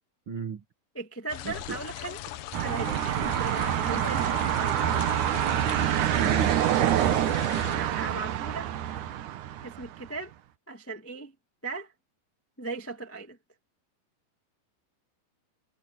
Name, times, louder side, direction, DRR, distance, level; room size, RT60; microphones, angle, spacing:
voice 1, 0.3-0.6 1.4-1.8 6.2-6.9, right 6 dB, 55° right, 1.4 m, -35 dB
voice 2, 0.9-2.2 2.6-4.9 7.7-8.7 9.6-10.3 10.7-11.3 11.6-11.9 12.6-13.4, right 3 dB, 15° left, 0.4 m, -37 dB
sound 1, 1.3-7.8, left 13 dB, 85° left, 1.9 m, -39 dB
sound 2, 2.5-10.1, right 11 dB, 85° right, 1.7 m, -26 dB
omnidirectional pair, 5.2 m